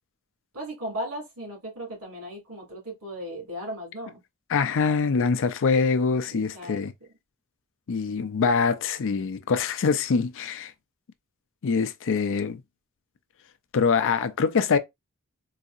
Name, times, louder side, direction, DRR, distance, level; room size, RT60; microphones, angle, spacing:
voice 1, 0.5-4.2 6.2-6.8, equal, 75° right, 2.4 m, -36 dB
voice 2, 4.5-6.9 7.9-10.7 11.6-12.6 13.7-14.8, left 5 dB, 60° left, 0.5 m, -24 dB
4.0 x 2.7 x 2.4 m
head